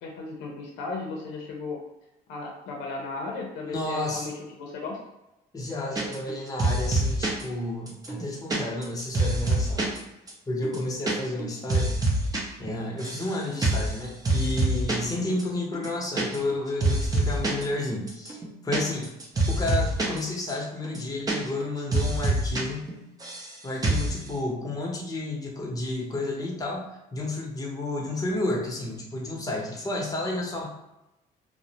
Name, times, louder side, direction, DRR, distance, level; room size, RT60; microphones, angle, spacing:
voice 1, 0.0-1.8 2.3-5.0 15.1-15.4, left 3 dB, 90° left, 0 dB, 0.5 m, -35 dB
voice 2, 3.6-4.3 5.5-9.9 10.5-12.0 12.6-18.4 18.6-19.1 19.5-22.8 23.6-30.7, left 2 dB, 20° left, -2 dB, 0.7 m, -31 dB
sound 1, 5.9-6.3 6.6-7.4 7.9-10.0 10.3-10.4 10.6-11.1 11.4-12.4 12.7-13.3 13.6-13.9 14.2-15.1 15.4-15.5 15.7-16.5 16.8-17.6 18.1-20.2 20.5-20.6 20.8-21.6 21.9-22.6 22.9-23.5 23.8-24.1, right 2 dB, 20° right, 0.5 m, -26 dB
2.4 x 2.1 x 2.8 m, 0.92 s
cardioid pair, 110°, 17 cm